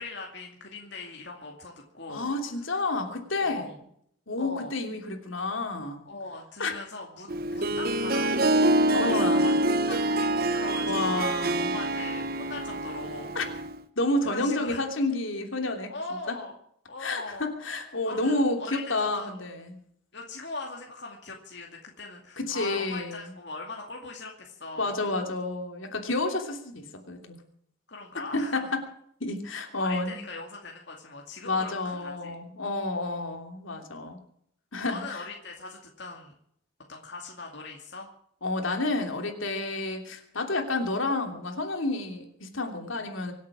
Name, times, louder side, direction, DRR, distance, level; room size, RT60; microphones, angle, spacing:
voice 1, 0.0-2.3 3.4-3.8 4.4-4.8 6.1-11.5 11.7-13.3 14.2-14.8 15.9-16.6 16.9-17.5 18.1-18.8 19.1-19.3 20.1-25.0 27.9-28.7 29.5-32.5 34.9-36.3 36.9-38.1, left 3 dB, 55° left, 0 dB, 2.4 m, -40 dB
voice 2, 2.1-3.7 4.3-6.0 6.6-6.8 8.9-9.4 10.9-11.7 13.3-13.5 14.0-15.9 16.3-16.4 17.0-19.8 22.4-23.3 24.8-27.4 28.1-28.8 29.2-30.1 31.4-34.2 34.7-35.2 38.4-43.3, left 2 dB, 75° left, 4 dB, 3.0 m, -30 dB
Harp, 7.3-13.8, right 1 dB, 45° right, 1.0 m, -26 dB
25.0 x 8.5 x 6.2 m, 0.67 s
head